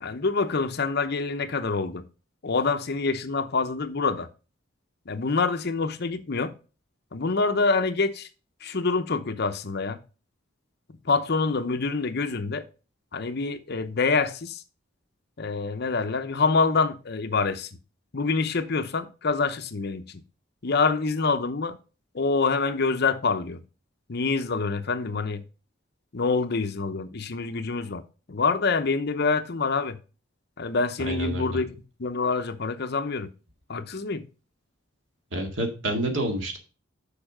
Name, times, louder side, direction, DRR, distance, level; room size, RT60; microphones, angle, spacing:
voice 1, 0.0-2.0 2.4-4.3 5.1-6.5 7.1-8.3 8.6-10.0 11.0-12.6 13.1-14.6 15.4-17.7 18.1-20.2 20.6-21.8 22.1-23.6 24.1-25.4 26.1-28.0 28.3-30.0 30.6-31.7 32.0-33.3 33.7-34.2, left 4 dB, 55° left, 0.8 m, -26 dB
voice 2, 31.0-31.6 35.3-36.6, right 1 dB, 70° right, 2.1 m, -28 dB
6.9 x 5.3 x 4.9 m
head